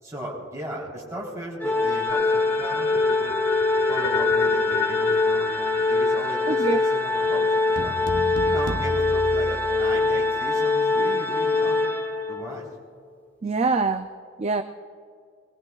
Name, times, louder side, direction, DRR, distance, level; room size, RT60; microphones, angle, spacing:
voice 1, 0.0-3.4 3.9-8.1 8.4-11.8 12.3-12.6, right 1 dB, 15° right, -5 dB, 3.7 m, -36 dB
Organ, 1.6-12.5, left 3 dB, 10° left, 1.0 m, -23 dB
sound 1, 2.1-8.2, left 5 dB, 75° left, 1.5 m, -31 dB
voice 2, 6.5-6.8 13.4-14.1 14.4-14.6, right 4 dB, 30° right, 7 dB, 0.4 m, -24 dB
sound 2, 7.8-10.3, right 1 dB, 60° right, 0.9 m, -32 dB
20.5 x 20.5 x 2.4 m, 2.3 s
head